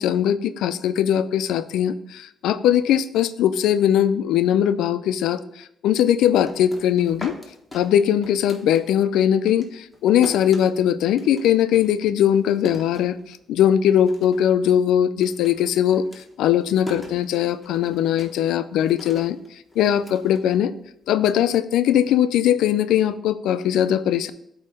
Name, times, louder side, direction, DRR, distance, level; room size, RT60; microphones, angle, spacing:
voice 1, 0.0-7.4 7.7-19.4 19.8-20.7 21.1-24.3, left 10 dB, 85° left, 12 dB, 0.3 m, -20 dB
sound 1, 6.3-9.2 9.5-13.6 13.9-14.5 14.8-21.1, left 1 dB, 10° left, 1.2 m, -41 dB
8.2 x 2.8 x 4.9 m, 0.75 s
cardioid pair, 90°, 0 cm